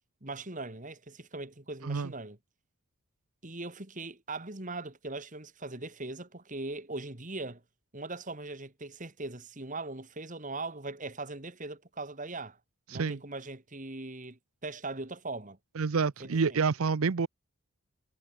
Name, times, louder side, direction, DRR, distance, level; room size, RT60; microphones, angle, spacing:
voice 1, 0.2-2.4 3.4-7.6 7.9-12.6 12.9-15.6 16.2-16.6, right 2 dB, 35° right, 2.5 m, -40 dB
voice 2, 15.8-17.3, right 5 dB, 80° right, 0.6 m, -28 dB
head